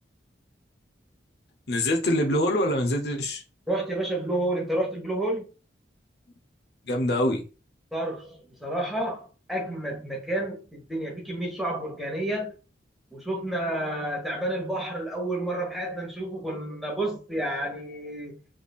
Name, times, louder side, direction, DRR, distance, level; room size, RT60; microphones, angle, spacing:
voice 1, 1.7-3.4 6.8-7.4, left 1 dB, 60° left, 0.8 m, -24 dB
voice 2, 3.7-5.5 7.9-12.5 13.1-18.4, right 1 dB, ahead, 1.1 m, -30 dB
3.7 x 3.4 x 2.3 m
head